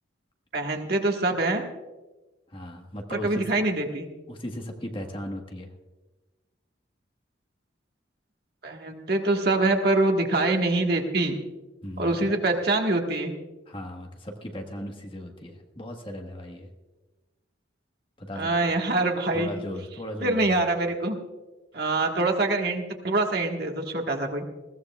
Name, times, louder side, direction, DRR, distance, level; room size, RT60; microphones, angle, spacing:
voice 1, 0.5-1.6 3.1-4.1 8.6-11.4 12.0-13.3 18.3-19.5 20.2-21.2 21.7-24.4, right 2 dB, 55° right, 2 dB, 1.5 m, -25 dB
voice 2, 2.5-3.4 4.3-5.7 11.8-12.4 13.7-16.7 18.2-18.7 19.3-20.7, left 1 dB, 25° left, 3 dB, 1.4 m, -37 dB
21.0 x 16.0 x 2.4 m, 1.2 s
head